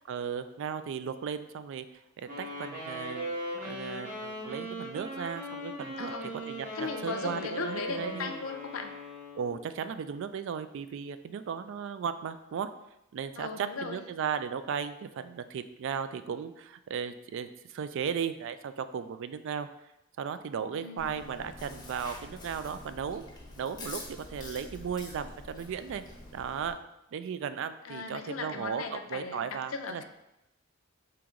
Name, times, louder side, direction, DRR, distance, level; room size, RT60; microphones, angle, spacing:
voice 1, 0.1-1.9 2.2-3.3 3.6-6.1 6.5-8.3 9.3-12.7 13.1-19.7 20.2-23.2 23.6-24.0 24.3-26.0 26.3-26.8 27.1-30.0, right 7 dB, 65° right, 11 dB, 0.3 m, -36 dB
Wind instrument woodwind instrument, 2.3-9.7, equal, 40° right, 1.2 m, -39 dB
voice 2, 6.0-6.3 6.7-8.9 13.4-14.0 20.7-21.2 27.8-29.4 29.7-30.0, left 4 dB, 80° left, 6 dB, 0.5 m, -37 dB
Chewing mastication, 21.0-26.7, left 2 dB, 20° left, 0.7 m, -46 dB
5.0 x 2.9 x 3.6 m, 0.89 s
head